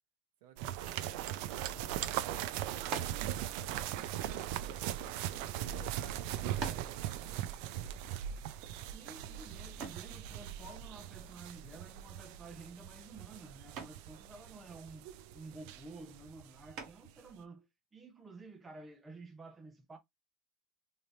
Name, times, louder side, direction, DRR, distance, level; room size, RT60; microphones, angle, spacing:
voice 1, 0.4-2.1 2.4-5.0 5.4-8.0, right 9 dB, 80° right, 0.9 m, -57 dB
sound 1, 0.6-16.7 17.0-17.1, right 11 dB, 60° right, 0.3 m, -40 dB
sound 2, 2.9-3.3 4.2-5.4 6.1-6.2 6.6-7.0 9.8-10.1 12.0-12.4 12.8-13.1 13.8-14.1 16.7-17.2, right 5 dB, 40° right, 1.0 m, -44 dB
voice 2, 8.9-17.7 17.9-20.0, right 3 dB, 15° right, 0.6 m, -51 dB
3.3 x 2.8 x 2.7 m
cardioid pair, 165°, 0 cm